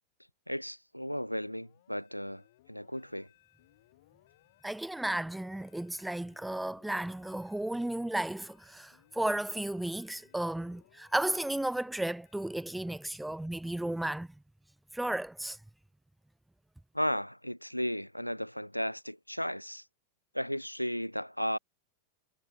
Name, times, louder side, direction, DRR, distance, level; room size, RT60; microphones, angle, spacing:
voice 1, 0.5-2.4 2.7-3.3 16.9-19.8 20.3-21.6, equal, 90° left, 0.4 m, -34 dB
sound 1, 1.3-13.4, left 16 dB, 55° left, 6.7 m, -66 dB
voice 2, 4.6-14.3 14.9-15.6, right 1 dB, 5° right, 0.6 m, -34 dB
figure-of-eight pair, 90°, 0 cm